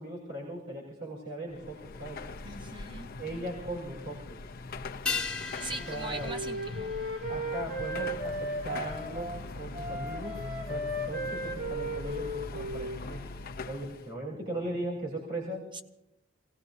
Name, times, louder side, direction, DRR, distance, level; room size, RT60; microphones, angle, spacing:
voice 1, 0.0-2.3 3.2-4.4 5.9-6.3 7.3-13.2 13.7-15.6, right 1 dB, 55° right, -5 dB, 4.1 m, -38 dB
Car passing by / Traffic noise roadway noise / Engine, 1.5-14.1, left 3 dB, 45° left, 0.6 m, -42 dB
voice 2, 2.4-3.1 5.6-6.9 15.7-15.8, right 2 dB, 25° right, 7 dB, 0.8 m, -40 dB
sound 1, 5.1-9.8 10.0-10.1, left 5 dB, 5° left, 1.1 m, -39 dB
Wind instrument woodwind instrument, 5.8-9.4 9.7-13.4, equal, 80° right, 3.7 m, -36 dB
27.5 x 18.0 x 2.7 m, 0.84 s
head